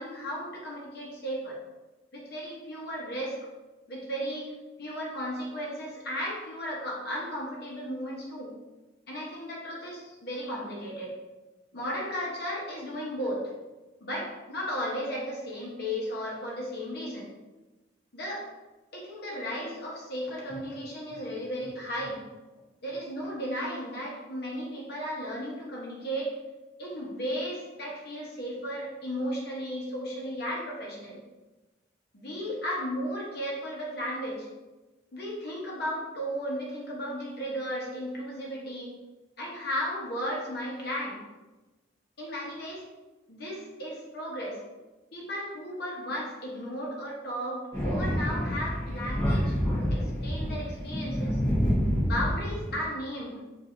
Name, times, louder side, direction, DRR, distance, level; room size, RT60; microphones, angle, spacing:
voice 1, 0.0-1.6 2.1-3.4 3.9-4.5 4.8-8.5 9.1-11.1 11.7-13.5 14.0-17.3 18.1-18.4 18.9-22.2 22.8-26.3 26.8-31.2 32.1-34.5 35.1-38.9 39.4-41.2 42.2-42.8 43.3-44.6 45.1-51.4 52.0-53.4, equal, 55° left, -3 dB, 1.0 m, -35 dB
Thunder, 47.7-52.8, equal, 20° left, 1.1 m, -28 dB
4.6 x 2.6 x 2.6 m, 1.1 s
head